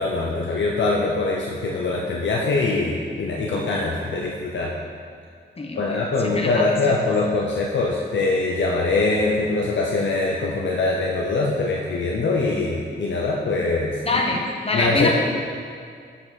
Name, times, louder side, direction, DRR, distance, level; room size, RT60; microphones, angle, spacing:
voice 1, 0.0-4.7 5.8-14.0 14.7-15.1, left 3 dB, 75° left, -2 dB, 0.8 m, -23 dB
voice 2, 5.6-6.0 6.2-7.0 14.0-15.1, left 2 dB, 30° left, -1 dB, 1.2 m, -24 dB
7.6 x 6.9 x 4.1 m, 2.2 s
wide cardioid pair, 105°, 19 cm